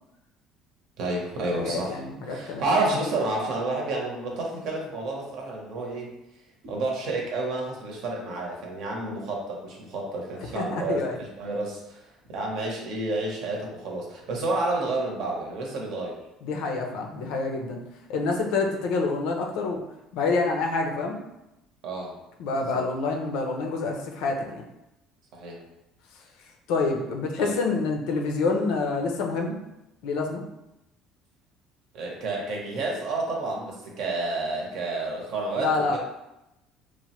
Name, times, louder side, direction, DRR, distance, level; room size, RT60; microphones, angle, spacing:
voice 1, 1.0-2.0 2.3-6.1 6.6-16.2 21.8-22.1 22.7-22.8 25.3-25.6 27.4-27.6 31.9-36.0, right 2 dB, 60° right, -1 dB, 0.8 m, -30 dB
voice 2, 1.5-2.6 10.5-11.2 16.4-17.8 18.1-19.8 20.1-21.2 22.4-24.7 26.7-29.6 30.0-30.4 35.6-36.0, left 3 dB, 75° left, 2 dB, 0.5 m, -27 dB
3.1 x 2.1 x 2.9 m, 0.92 s
cardioid pair, 145°, 0 cm